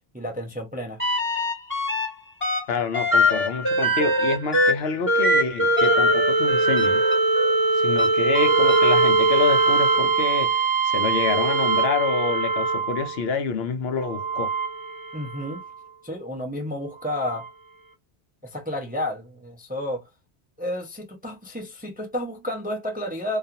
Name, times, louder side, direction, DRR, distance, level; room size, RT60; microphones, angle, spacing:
voice 1, 0.1-1.0 15.1-15.6 16.0-17.5 18.4-20.0 20.6-23.4, left 1 dB, 10° right, 0.4 m, -31 dB
sound 1, 1.0-2.1 2.4-13.2 14.0-15.6 17.3-17.4, right 2 dB, 10° left, 1.1 m, -21 dB
voice 2, 2.7-7.0 7.8-14.5, left 5 dB, 75° left, 0.8 m, -27 dB
2.4 x 2.3 x 2.7 m
omnidirectional pair, 1.1 m